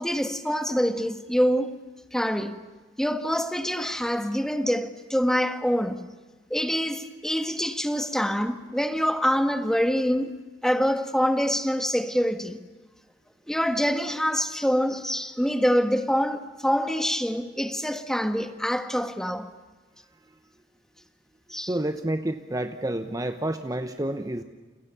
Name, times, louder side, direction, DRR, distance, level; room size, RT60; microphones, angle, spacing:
voice 1, 0.0-1.7 2.1-2.6 3.0-6.0 6.5-10.3 10.6-12.6 13.5-19.5 21.5-21.7, equal, 5° left, 1.4 m, -25 dB
voice 2, 21.7-24.4, right 1 dB, 20° right, 0.9 m, -29 dB
29.5 x 29.0 x 6.9 m
head